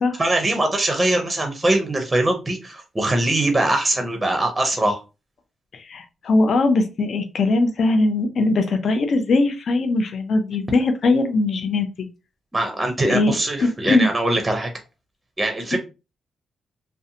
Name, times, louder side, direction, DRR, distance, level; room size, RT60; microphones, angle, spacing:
voice 1, 0.2-5.0 12.5-14.7 15.4-15.8, right 1 dB, 15° right, 4 dB, 0.5 m, -22 dB
voice 2, 5.7-12.1 13.0-14.1 15.7-15.8, left 2 dB, 55° left, 7 dB, 0.4 m, -20 dB
2.6 x 2.1 x 2.7 m, 0.29 s
cardioid pair, 125°, 0 cm